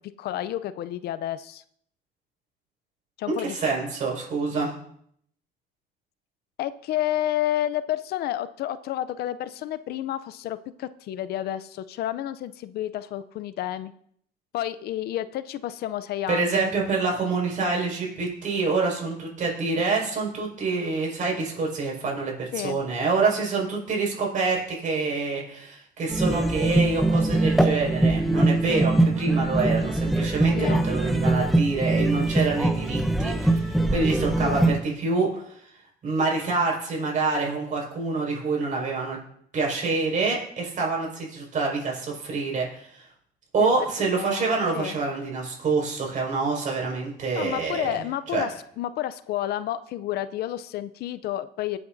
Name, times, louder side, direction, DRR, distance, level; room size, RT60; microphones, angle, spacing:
voice 1, 0.2-1.6 3.2-3.6 6.6-13.9 14.5-16.6 22.5-22.8 30.6-30.8 34.4-34.7 43.6-45.0 47.3-51.8, left 12 dB, 70° left, 14 dB, 0.6 m, -30 dB
voice 2, 3.3-4.7 16.3-35.5 36.0-39.2 39.5-43.0 43.5-47.9 48.3-48.5, right 4 dB, 50° right, -2 dB, 5.4 m, -26 dB
sound 1, 26.1-34.8, right 2 dB, ahead, 0.9 m, -22 dB
23.0 x 8.6 x 2.7 m, 0.67 s
cardioid pair, 110°, 17 cm